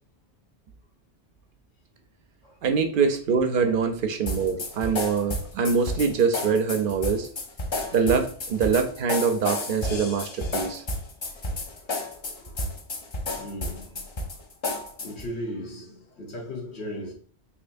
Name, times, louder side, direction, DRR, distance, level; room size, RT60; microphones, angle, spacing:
voice 1, 2.6-7.3 7.9-10.8, right 5 dB, 60° right, 0.6 m, -24 dB
sound 1, 4.3-15.3, left 2 dB, 40° left, 0.4 m, -31 dB
voice 2, 7.8-8.2 10.5-10.8 11.7-12.7 13.3-14.1 15.0-17.1, equal, 70° left, 1.4 m, -38 dB
4.3 x 2.8 x 2.6 m
omnidirectional pair, 1.1 m